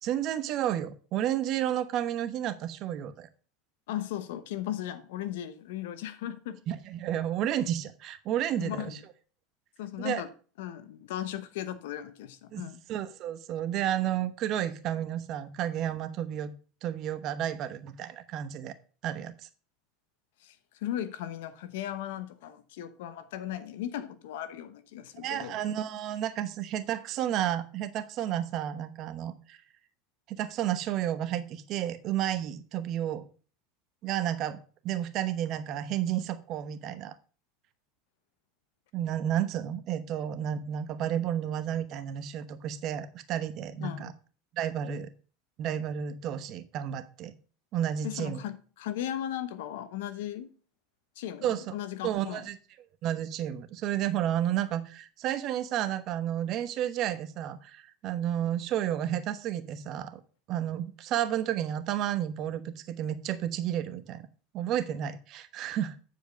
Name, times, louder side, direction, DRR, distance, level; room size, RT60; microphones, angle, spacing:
voice 1, 0.0-3.3 6.7-9.0 10.0-10.2 12.5-12.6 12.9-16.5 16.8-18.7 19.0-19.3 25.2-29.6 30.3-33.3 34.0-34.6 34.8-37.1 38.9-44.1 44.5-45.1 45.6-47.3 47.7-48.4 51.4-51.6 52.0-52.6 53.0-60.2 60.5-64.2 64.5-65.9, right 11 dB, 50° right, 1.0 m, -31 dB
voice 2, 3.9-6.6 8.6-9.0 9.8-10.3 10.6-12.8 20.4-25.6 43.8-44.1 48.0-50.5 51.2-52.4, left 11 dB, 75° left, 1.0 m, -37 dB
9.4 x 4.9 x 5.2 m
supercardioid pair, 110°, 0 cm